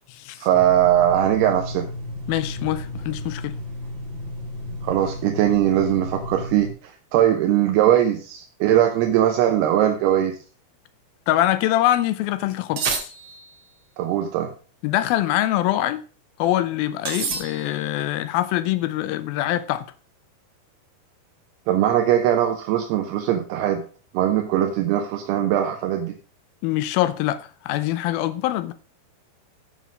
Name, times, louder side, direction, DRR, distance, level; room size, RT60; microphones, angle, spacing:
voice 1, 0.4-1.9 4.8-10.4 14.0-14.5 21.7-23.8 24.1-26.1, right 11 dB, 85° right, 2.9 m, -20 dB
sound 1, 0.5-6.7, left 1 dB, 40° right, 3.9 m, -33 dB
voice 2, 2.3-3.6 11.3-13.1 14.8-16.0 16.4-19.9 26.6-28.7, left 14 dB, 80° left, 2.3 m, -24 dB
sound 2, 12.8-13.7 17.0-18.0, right 5 dB, 60° right, 1.4 m, -29 dB
9.8 x 6.0 x 5.2 m
omnidirectional pair, 4.6 m